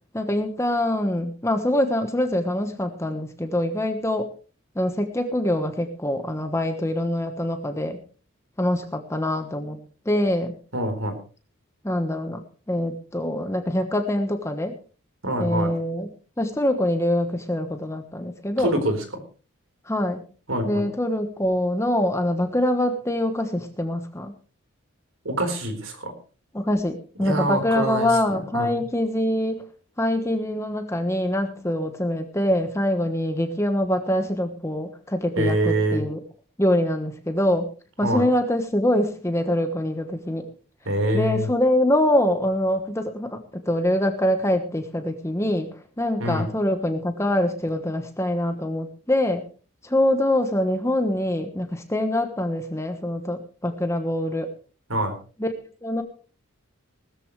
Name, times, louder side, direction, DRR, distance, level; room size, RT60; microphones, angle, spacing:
voice 1, 0.1-4.3 4.7-8.0 8.6-9.8 10.0-10.5 11.8-12.4 12.7-14.7 15.4-16.1 16.4-18.8 19.9-20.2 20.6-24.3 26.5-29.6 30.0-36.2 36.6-37.7 38.0-40.5 41.1-49.4 49.8-54.5 55.4-55.5 55.8-56.0, left 1 dB, 15° left, 7 dB, 1.2 m, -24 dB
voice 2, 10.7-11.2 15.2-15.7 18.6-19.0 20.5-20.9 25.2-26.1 27.2-28.8 35.4-36.0 38.0-38.3 40.9-41.5 46.2-46.5 54.9-55.2, right 1 dB, 80° right, 7 dB, 4.3 m, -25 dB
19.0 x 14.0 x 3.2 m, 0.37 s
head